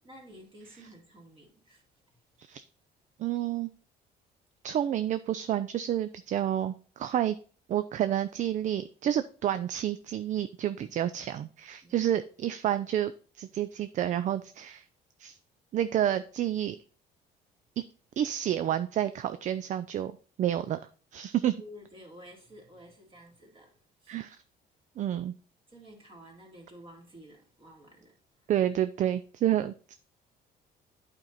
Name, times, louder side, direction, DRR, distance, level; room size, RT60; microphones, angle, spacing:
voice 1, 0.0-1.8 11.8-12.1 21.6-24.2 25.7-28.5, equal, 30° right, 2.3 m, -52 dB
voice 2, 3.2-3.7 4.6-7.4 7.7-14.8 15.2-15.4 15.7-16.8 18.2-20.1 20.4-20.8 21.1-21.5 24.1-24.4 25.0-25.3 28.5-29.9, right 11 dB, 45° right, 0.4 m, -29 dB
8.8 x 4.5 x 4.0 m
cardioid pair, 110°, 17 cm